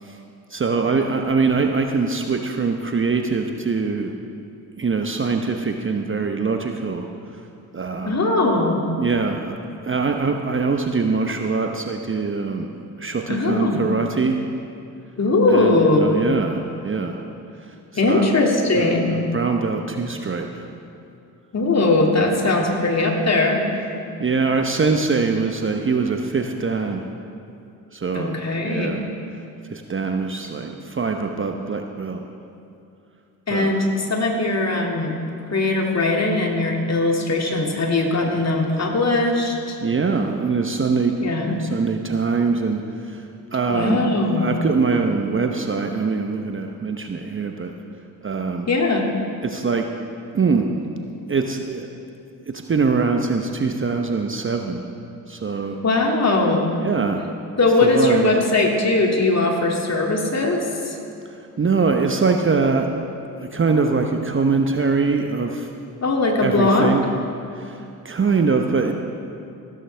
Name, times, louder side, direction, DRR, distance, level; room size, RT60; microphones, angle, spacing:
voice 1, 0.5-4.1 4.8-7.1 7.7-8.2 9.0-9.6 9.8-12.7 13.0-14.4 15.5-17.2 17.9-18.3 18.8-20.7 22.2-22.4 24.2-27.1 27.9-29.1 29.7-32.2 33.5-33.8 39.8-41.1 41.6-43.3 43.5-44.0 44.4-47.7 48.2-48.7 49.4-49.9 50.3-50.8 51.3-51.9 52.7-54.9 55.3-55.8 56.8-57.2 57.8-58.3 61.3-62.9 63.4-65.7 66.4-67.0 67.6-68.9, right 4 dB, 25° right, 4 dB, 0.9 m, -23 dB
voice 2, 8.1-8.8 13.3-13.8 15.2-16.1 17.9-19.2 21.5-23.6 28.1-29.0 33.5-35.2 35.5-39.8 41.2-41.6 43.7-44.5 48.7-49.1 55.8-56.7 57.6-61.0 66.0-66.9, left 2 dB, 30° left, 0 dB, 2.5 m, -20 dB
15.5 x 13.0 x 3.4 m, 2.6 s
hypercardioid pair, 50°, 48 cm